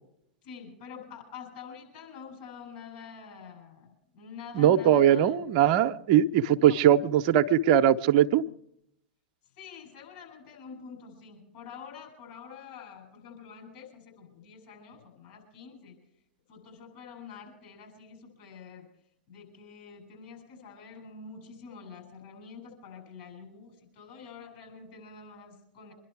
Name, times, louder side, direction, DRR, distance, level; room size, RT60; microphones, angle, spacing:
voice 1, 0.4-5.6 6.6-6.8 9.6-16.0 16.5-18.9 19.3-25.9, left 6 dB, 55° left, 2 dB, 7.8 m, -47 dB
voice 2, 4.6-8.4, right 10 dB, 50° right, 10 dB, 0.7 m, -21 dB
25.0 x 11.5 x 4.7 m, 0.76 s
figure-of-eight pair, 95°, 5 cm